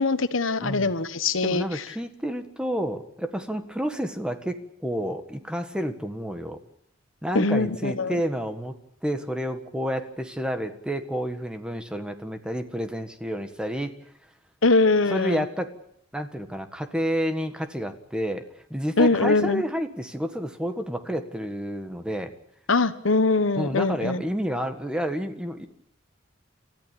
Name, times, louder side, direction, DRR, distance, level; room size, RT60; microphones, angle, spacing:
voice 1, 0.0-1.6 7.3-8.2 14.6-15.4 19.0-19.6 22.7-24.2, left 3 dB, 80° left, 12 dB, 1.2 m, -22 dB
voice 2, 0.6-0.9 1.4-6.6 7.2-8.8 9.0-13.9 15.1-15.7 16.1-22.3 23.6-25.7, equal, 5° right, 7 dB, 1.6 m, -30 dB
29.5 x 14.0 x 8.6 m, 0.71 s
head